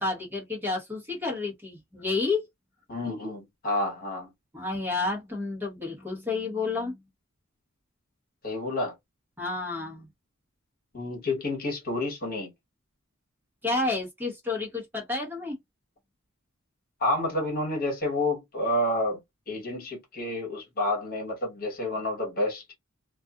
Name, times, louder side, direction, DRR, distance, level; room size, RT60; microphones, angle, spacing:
voice 1, 0.0-2.4 4.5-7.0 9.4-10.1 13.6-15.6, left 3 dB, 10° right, 1.0 m, -30 dB
voice 2, 2.9-4.3 8.4-8.9 10.9-12.5 17.0-19.2 19.5-22.6, left 1 dB, 45° left, 1.3 m, -29 dB
2.4 x 2.4 x 2.4 m
head